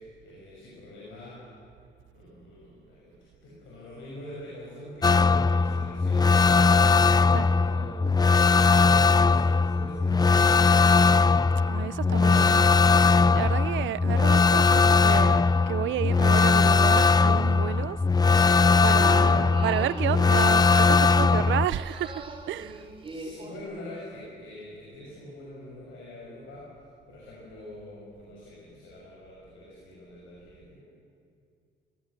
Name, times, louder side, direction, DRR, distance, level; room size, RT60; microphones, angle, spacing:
voice 1, 0.0-1.5 2.1-7.0 7.3-10.8 19.1-19.8 23.1-26.7 27.1-30.8, left 1 dB, 85° left, 6.2 m, -45 dB
sound 1, 5.0-21.7, left 4 dB, 20° left, 0.4 m, -20 dB
voice 2, 11.7-12.7 13.3-18.0 18.8-22.9, right 13 dB, 75° right, 0.5 m, -31 dB
sound 2, 18.6-23.6, right 2 dB, 25° right, 3.3 m, -40 dB
21.5 x 17.5 x 8.2 m
cardioid pair, 90°, 20 cm